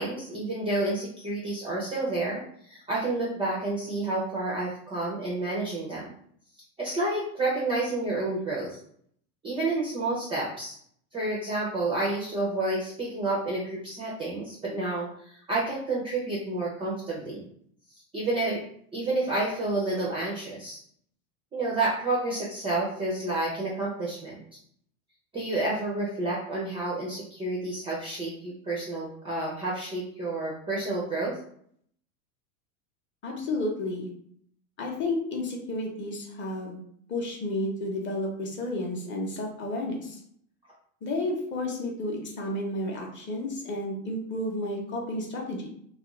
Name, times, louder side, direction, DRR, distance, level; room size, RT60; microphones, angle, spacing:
voice 1, 0.0-6.1 6.8-8.8 9.4-10.7 11.1-17.4 18.1-18.6 18.9-20.8 21.5-24.3 25.3-31.4, right 2 dB, 15° right, -5 dB, 0.3 m, -30 dB
voice 2, 33.2-34.1 34.8-36.8 37.1-40.2 41.0-45.7, left 1 dB, 25° left, 0 dB, 0.6 m, -31 dB
2.4 x 2.3 x 2.9 m, 0.65 s
supercardioid pair, 115°, 45 cm